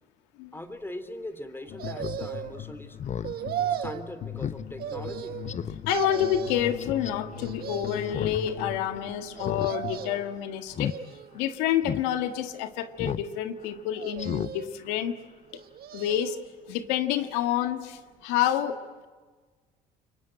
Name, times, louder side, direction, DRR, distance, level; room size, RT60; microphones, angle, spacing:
voice 1, 0.5-3.0 3.7-5.4, left 1 dB, 10° left, 10 dB, 3.1 m, -40 dB
sound 1, 1.7-10.1, left 8 dB, 70° left, 2.3 m, -40 dB
sound 2, 1.8-2.6 3.2-4.1 4.8-5.6 5.9-6.7 7.4-8.2 9.4-10.3 10.8-11.5 12.2-12.9 14.0-14.8 15.5-16.4 16.8-16.9, right 10 dB, 60° right, 1.7 m, -36 dB
Speech synthesizer, 2.0-2.2 2.6-2.7 3.0-3.3 3.7-3.8 4.4-4.6 5.0-5.1 5.5-5.8 6.8-7.1 8.0-8.4 8.7-8.8 9.4-9.7 10.0-10.2 10.7-11.0 11.4-11.5 11.8-12.0 13.0-13.3 13.6-13.7 14.2-14.5 14.9-15.0, left 8 dB, 40° left, 0.9 m, -33 dB
voice 2, 5.8-10.9 11.3-15.1 15.9-16.4 16.7-19.1, left 11 dB, 85° left, 8 dB, 1.8 m, -28 dB
28.5 x 23.5 x 8.8 m, 1.4 s
supercardioid pair, 75°, 18 cm